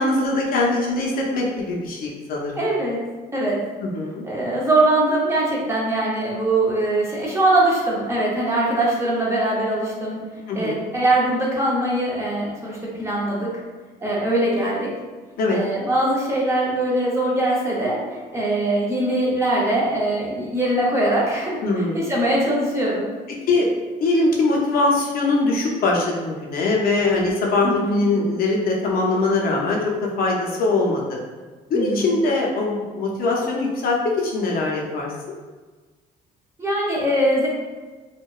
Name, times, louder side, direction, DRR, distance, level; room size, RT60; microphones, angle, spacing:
voice 1, 0.0-2.6 3.8-4.2 10.5-10.8 15.4-15.6 21.6-22.0 23.5-23.7 24.0-31.2 31.7-35.1, left 2 dB, 60° left, -2 dB, 0.5 m, -22 dB
voice 2, 2.6-3.0 3.3-3.6 4.2-10.2 10.5-13.5 14.0-14.9 15.5-23.1 27.6-28.1 31.7-32.1 36.6-37.5, right 1 dB, 15° right, -5 dB, 0.6 m, -22 dB
2.7 x 2.1 x 2.3 m, 1.4 s
cardioid pair, 110°, 17 cm